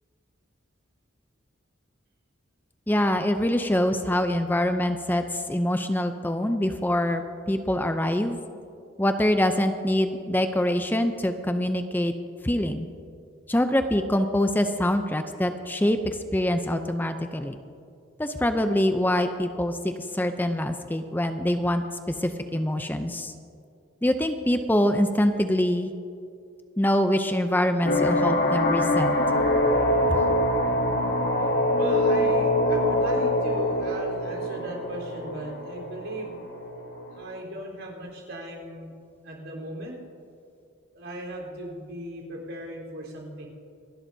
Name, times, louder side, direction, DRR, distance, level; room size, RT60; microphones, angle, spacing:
voice 1, 2.9-8.4 9.0-12.1 12.4-12.9 13.5-17.6 18.2-21.8 22.2-23.3 24.0-25.9 26.8-29.1 30.1-30.2, left 1 dB, 10° left, 8 dB, 0.5 m, -24 dB
sound 1, 27.8-37.4, left 1 dB, 55° left, 1.4 m, -24 dB
voice 2, 30.7-31.1 31.4-36.4 37.1-38.9 39.2-40.0 40.9-43.5, right 1 dB, 90° right, -2 dB, 3.9 m, -37 dB
28.0 x 12.0 x 2.7 m, 2.4 s
head